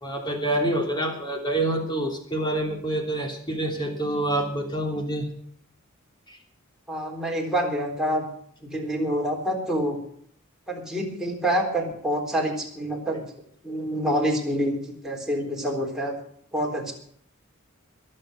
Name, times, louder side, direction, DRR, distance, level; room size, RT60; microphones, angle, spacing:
voice 1, 0.0-5.3 6.3-6.4, right 1 dB, 20° left, 2 dB, 3.2 m, -27 dB
voice 2, 6.9-8.3 8.6-10.0 10.7-13.2 13.6-16.1 16.5-16.9, equal, ahead, -1 dB, 3.8 m, -27 dB
22.0 x 7.8 x 6.5 m, 0.62 s
head